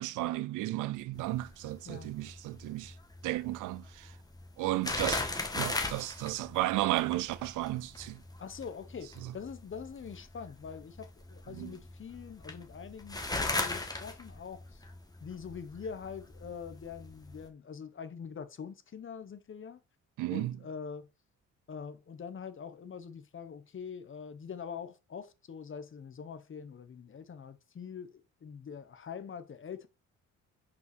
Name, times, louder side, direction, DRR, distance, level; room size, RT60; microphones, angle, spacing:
voice 1, 0.0-2.9 3.2-4.1 4.6-5.2 5.5-8.2 11.5-11.8 20.2-20.6, right 17 dB, 90° right, 0.6 m, -33 dB
sound 1, 1.1-17.5, left 2 dB, 10° left, 1.8 m, -39 dB
voice 2, 8.4-14.8 15.2-19.8 20.3-21.1 21.7-29.9, left 6 dB, 40° left, 1.2 m, -44 dB
5.5 x 5.5 x 6.1 m
cardioid pair, 90°, 30 cm